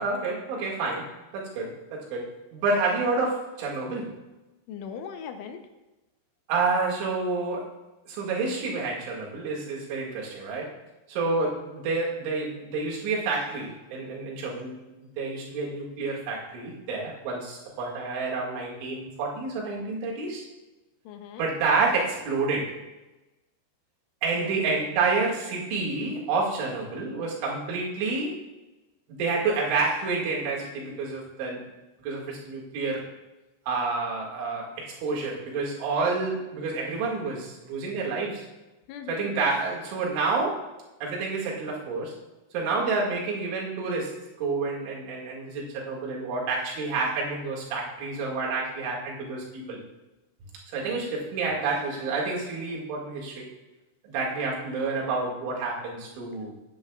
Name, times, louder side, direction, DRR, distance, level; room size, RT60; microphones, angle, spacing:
voice 1, 0.0-4.1 6.5-7.7 8.1-10.7 11.1-14.8 15.2-20.4 21.4-22.8 24.2-28.4 29.1-31.7 32.0-33.1 33.7-38.5 39.1-40.7 41.0-42.1 42.5-49.8 50.7-53.5 54.0-56.5, right 3 dB, 75° right, -3 dB, 4.4 m, -29 dB
voice 2, 4.7-5.6 21.1-21.5 24.4-24.9 38.9-39.4, left 7 dB, 80° left, 6 dB, 3.2 m, -40 dB
16.5 x 9.3 x 2.4 m, 1.1 s
omnidirectional pair, 5.6 m